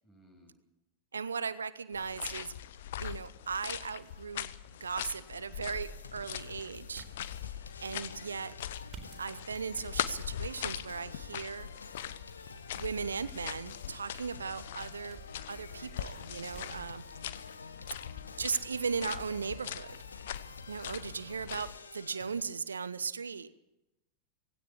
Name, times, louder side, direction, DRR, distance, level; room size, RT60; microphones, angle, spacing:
voice 1, 0.0-0.6 16.5-17.0 17.7-18.4, equal, 15° left, 5 dB, 6.6 m, -62 dB
voice 2, 1.1-2.5 2.9-4.5 4.8-7.1 7.8-8.5 9.2-11.7 12.7-15.2 15.5-17.0 18.4-20.0 20.7-23.5, right 5 dB, 75° right, 16 dB, 0.7 m, -37 dB
sound 1, 1.9-21.8, left 11 dB, 55° left, 0.9 m, -42 dB
sound 2, 2.4-20.4, right 4 dB, 30° right, 4.0 m, -57 dB
sound 3, 5.8-22.4, left 4 dB, 75° left, 1.4 m, -49 dB
18.5 x 17.0 x 8.6 m, 0.94 s
figure-of-eight pair, 90°, 0 cm